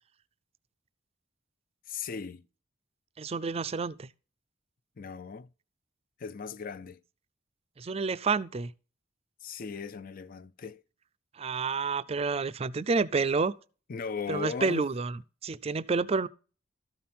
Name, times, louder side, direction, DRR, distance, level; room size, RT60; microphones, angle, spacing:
voice 1, 1.9-2.5 5.0-5.5 6.2-7.0 9.4-10.8 13.9-14.9, left 5 dB, 45° left, 0.5 m, -37 dB
voice 2, 3.2-4.1 7.8-8.7 11.4-13.5 14.3-16.3, right 4 dB, 30° right, 0.4 m, -29 dB
13.0 x 5.5 x 4.3 m
head